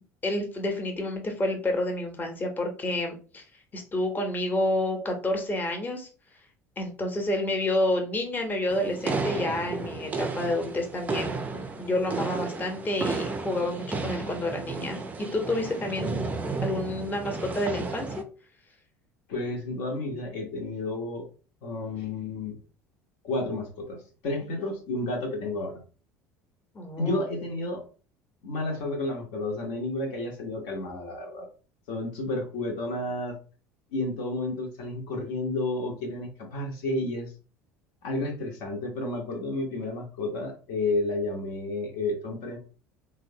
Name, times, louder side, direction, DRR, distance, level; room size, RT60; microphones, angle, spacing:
voice 1, 0.2-3.4 3.7-6.1 6.8-16.3 16.6-18.2 26.7-27.2, left 1 dB, 20° left, 3 dB, 0.8 m, -29 dB
sound 1, 8.7-18.2, right 4 dB, 20° right, 0.4 m, -33 dB
voice 2, 19.3-21.3 21.6-22.6 23.2-25.8 27.0-27.8 28.4-31.5 31.9-33.4 33.9-37.3 38.0-42.6, left 2 dB, 55° left, 2 dB, 0.7 m, -31 dB
3.1 x 2.0 x 2.7 m, 0.37 s
figure-of-eight pair, 65°, 9 cm